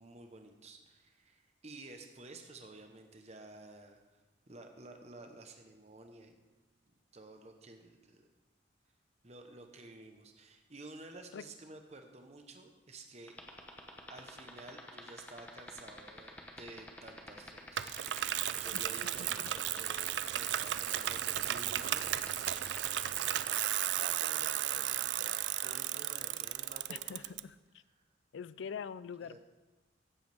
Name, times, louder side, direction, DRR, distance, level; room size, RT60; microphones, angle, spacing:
voice 1, 0.0-4.2 4.5-6.3 7.1-8.3 9.2-13.4 14.1-18.3 18.6-22.1 24.0-27.4 29.2-29.4, right 2 dB, 35° right, 5 dB, 1.0 m, -52 dB
sound 1, 13.3-23.6, left 1 dB, 10° left, 0.9 m, -47 dB
Bicycle, 17.8-27.4, right 12 dB, 65° right, 0.3 m, -34 dB
voice 2, 26.9-27.8 28.3-29.4, left 6 dB, 75° left, 16 dB, 0.4 m, -44 dB
15.5 x 8.0 x 3.5 m, 1.2 s
head